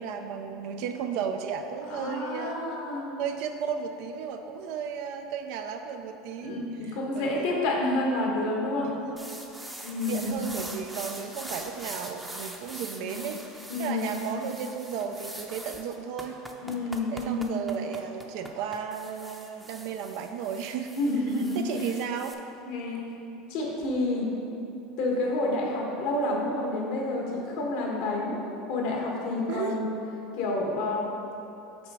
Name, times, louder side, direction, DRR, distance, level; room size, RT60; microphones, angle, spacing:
voice 1, 0.0-2.6 3.2-6.6 7.1-7.6 8.8-9.3 10.1-16.4 17.1-20.9 21.5-22.4 29.5-29.8, right 7 dB, 70° right, 6 dB, 0.4 m, -34 dB
voice 2, 1.9-3.1 6.4-9.0 9.8-10.3 13.0-13.2 13.7-14.1 16.6-17.5 21.0-21.9 22.6-23.0 23.5-24.3 25.0-28.4 28.7-29.9 30.3-31.1, left 2 dB, 70° left, -1 dB, 1.3 m, -29 dB
sound 1, 9.2-22.3, right 1 dB, 5° right, 0.6 m, -43 dB
6.0 x 4.0 x 4.7 m, 2.8 s
supercardioid pair, 100°, 0 cm